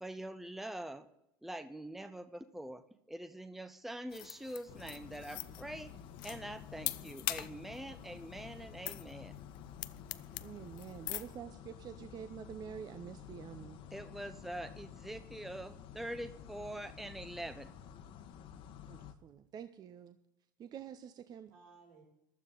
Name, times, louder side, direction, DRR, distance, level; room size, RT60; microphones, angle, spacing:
voice 1, 0.0-1.1 1.4-2.8 3.1-5.9 6.2-9.4 13.9-17.7, right 1 dB, ahead, 10 dB, 0.7 m, -44 dB
sound 1, 4.1-11.4, left 19 dB, 75° left, 0.5 m, -43 dB
sound 2, 4.7-19.1, left 8 dB, 55° left, 1.1 m, -51 dB
voice 2, 9.7-10.8 21.5-22.0, right 4 dB, 80° right, -3 dB, 6.2 m, -62 dB
voice 3, 10.4-13.8 18.9-20.2 20.6-21.5, right 8 dB, 40° right, 10 dB, 0.7 m, -47 dB
15.0 x 12.0 x 3.9 m, 0.82 s
hypercardioid pair, 90°, 11 cm